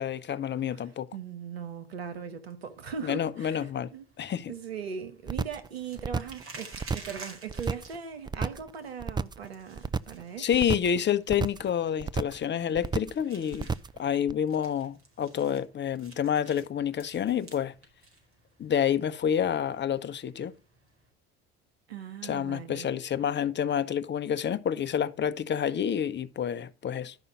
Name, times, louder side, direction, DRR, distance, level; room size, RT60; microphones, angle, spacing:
voice 1, 0.0-1.1 3.0-3.9 4.2-4.5 10.4-13.7 14.0-17.7 18.6-20.5 22.2-27.1, left 8 dB, 35° left, 1.0 m, -28 dB
voice 2, 1.1-4.0 4.5-10.5 21.9-22.9, right 7 dB, 90° right, 1.4 m, -39 dB
sound 1, 2.6-21.1, right 3 dB, 45° right, 4.9 m, -53 dB
sound 2, 5.3-5.7 6.0-6.4 6.7-7.2 7.5-8.0 8.3-8.7 9.0-9.5 9.8-10.2 10.5-11.0 11.3-11.7 12.0-12.5 12.8-13.2 13.5-14.0 14.3-14.4, right 5 dB, 15° right, 0.5 m, -31 dB
11.5 x 5.6 x 5.4 m
hypercardioid pair, 65°, 30 cm